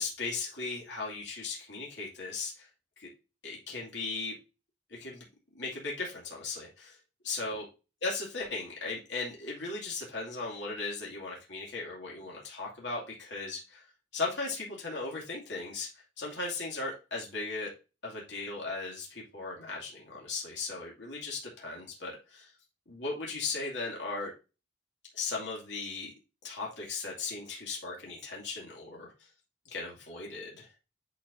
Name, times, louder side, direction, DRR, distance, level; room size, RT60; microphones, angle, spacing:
voice 1, 0.0-2.7 3.0-3.1 3.4-4.4 4.9-5.3 5.5-7.0 7.2-7.6 8.0-13.8 14.1-17.7 18.0-22.5 22.9-24.3 25.1-26.1 26.4-29.1 29.7-30.7, left 3 dB, 70° left, -3 dB, 2.5 m, -37 dB
10.0 x 4.7 x 2.7 m, 0.30 s
head